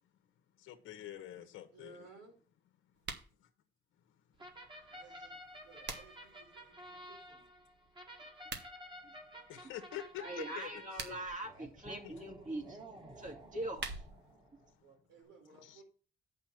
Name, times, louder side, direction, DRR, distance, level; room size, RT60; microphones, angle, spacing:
voice 1, 0.6-2.1 9.5-10.7 11.1-11.2 12.0-12.1 15.6-15.8, left 12 dB, 90° left, 1.1 m, -46 dB
voice 2, 1.7-2.4 4.9-5.3 5.6-7.5 14.8-15.8, right 4 dB, 85° right, 4.1 m, -59 dB
sound 1, 3.0-3.3 5.4-6.3 8.3-8.7 10.7-11.4 13.4-14.4, right 5 dB, 60° right, 1.5 m, -45 dB
sound 2, 4.4-14.7, right 1 dB, 25° right, 2.0 m, -52 dB
voice 3, 10.2-12.8 13.2-14.0, right 1 dB, 40° right, 2.3 m, -42 dB
7.7 x 5.4 x 5.9 m
cardioid pair, 90°, 20 cm